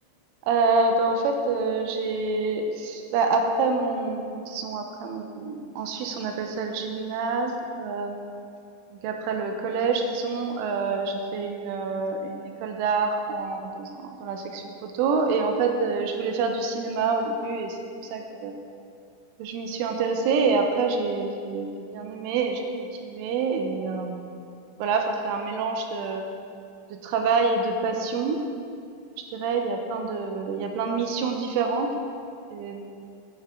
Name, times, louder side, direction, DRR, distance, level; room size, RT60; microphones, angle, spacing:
voice 1, 0.5-7.5 7.8-8.3 8.9-17.8 18.1-18.5 19.4-22.6 23.0-24.3 24.8-26.3 27.0-28.4 29.3-31.9 32.5-33.0, right 4 dB, 90° right, 4 dB, 3.3 m, -27 dB
9.5 x 9.4 x 3.7 m, 2.5 s
omnidirectional pair, 5.6 m